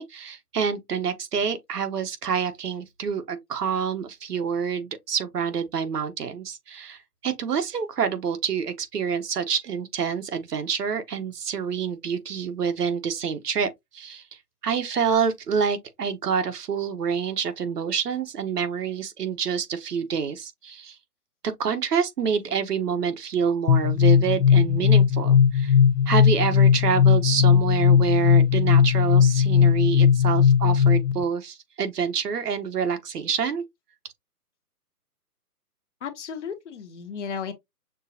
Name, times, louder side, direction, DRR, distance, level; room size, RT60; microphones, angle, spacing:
voice 1, 0.0-14.2 14.6-21.0 21.4-25.7 26.1-33.6, right 6 dB, 80° right, 1.2 m, -27 dB
sound 1, 23.7-31.2, left 7 dB, 90° left, 0.7 m, -18 dB
voice 2, 36.0-37.5, left 6 dB, 50° left, 1.2 m, -34 dB
6.4 x 2.5 x 2.7 m
hypercardioid pair, 165°, 47 cm